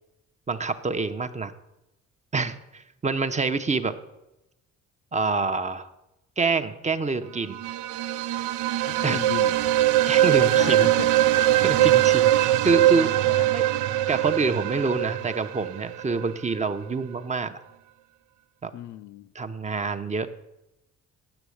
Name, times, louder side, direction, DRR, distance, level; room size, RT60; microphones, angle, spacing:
voice 1, 0.5-1.5 2.3-3.9 5.1-5.9 6.4-7.6 9.0-9.2 10.1-10.9 11.6-13.1 13.5-13.6 14.1-17.6 18.6-18.7 19.3-20.3, right 4 dB, 25° right, 9 dB, 0.7 m, -26 dB
sound 1, 7.5-16.3, right 14 dB, 80° right, 0.5 m, -22 dB
voice 2, 8.8-9.6 10.3-11.1 12.7-13.5 18.7-19.3, left 12 dB, 70° left, 15 dB, 0.6 m, -35 dB
7.9 x 7.0 x 8.5 m, 0.94 s
cardioid pair, 90°, 30 cm